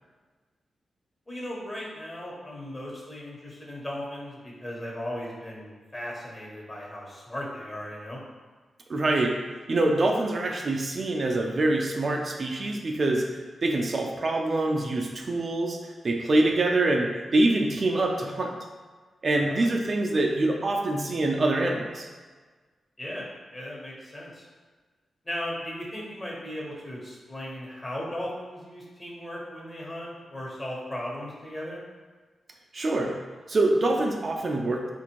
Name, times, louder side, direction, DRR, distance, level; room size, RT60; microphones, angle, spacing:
voice 1, 1.3-8.2 19.3-19.7 23.0-23.2 23.5-24.5 25.2-31.8, left 1 dB, 30° left, -4 dB, 1.1 m, -37 dB
voice 2, 8.9-9.4 9.7-15.8 16.0-18.5 19.2-22.1 32.7-33.1 33.5-34.9, right 2 dB, 55° right, 1 dB, 0.4 m, -25 dB
3.5 x 2.5 x 3.0 m, 1.4 s
cardioid pair, 50°, 0 cm